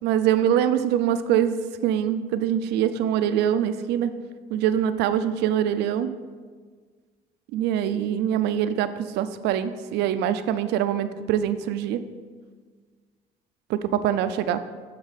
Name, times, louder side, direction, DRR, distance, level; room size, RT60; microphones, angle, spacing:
voice 1, 0.0-1.6 1.8-4.1 4.5-6.1 7.5-12.0 13.7-14.6, right 10 dB, 85° right, 11 dB, 0.4 m, -24 dB
11.5 x 4.0 x 4.1 m, 1.5 s
cardioid pair, 110°, 17 cm